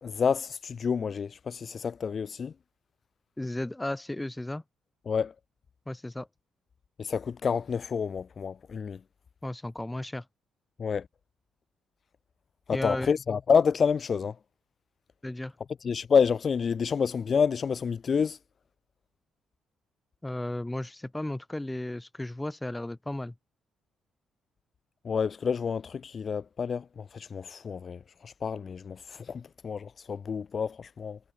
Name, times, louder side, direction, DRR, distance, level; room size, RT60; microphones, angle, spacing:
voice 1, 0.0-2.5 5.1-5.3 7.0-9.0 10.8-11.1 12.7-14.3 15.8-18.4 25.0-31.2, left 6 dB, 45° left, 0.5 m, -28 dB
voice 2, 3.4-4.6 5.9-6.3 9.4-10.2 12.7-13.1 15.2-15.5 20.2-23.3, left 1 dB, 10° left, 1.3 m, -34 dB
cardioid pair, 90°, 0 cm